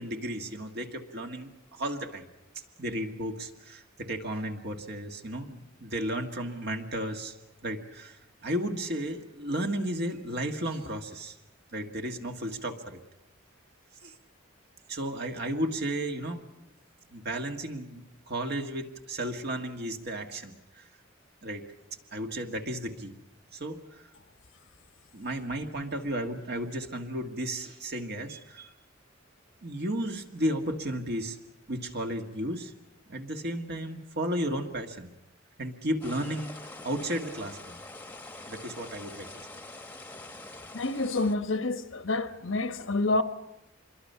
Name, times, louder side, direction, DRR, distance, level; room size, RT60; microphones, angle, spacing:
voice 1, 0.0-2.3 2.8-7.4 7.6-11.4 11.7-13.0 14.0-14.1 14.9-16.4 17.1-20.8 21.4-21.6 22.1-23.2 23.5-24.0 25.1-28.7 29.6-31.4 31.7-32.7 33.1-35.1 35.6-37.8 38.5-39.3, right 1 dB, 55° right, 1.8 m, -34 dB
sound 1, 36.0-41.4, left 2 dB, 10° left, 1.1 m, -45 dB
voice 2, 40.7-43.2, left 2 dB, 75° left, 1.1 m, -28 dB
26.0 x 22.5 x 5.7 m
head